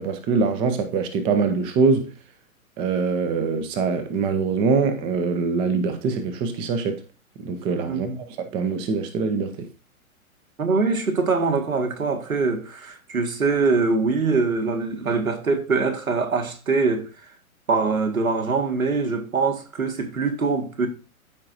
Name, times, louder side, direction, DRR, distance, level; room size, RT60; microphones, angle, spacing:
voice 1, 0.0-2.1 2.8-7.0 7.4-9.7, right 4 dB, 10° right, 0.5 m, -23 dB
voice 2, 7.9-8.2 10.6-17.1 17.7-20.9, right 4 dB, 70° right, 1.8 m, -23 dB
13.5 x 4.8 x 2.6 m
figure-of-eight pair, 110°, 42 cm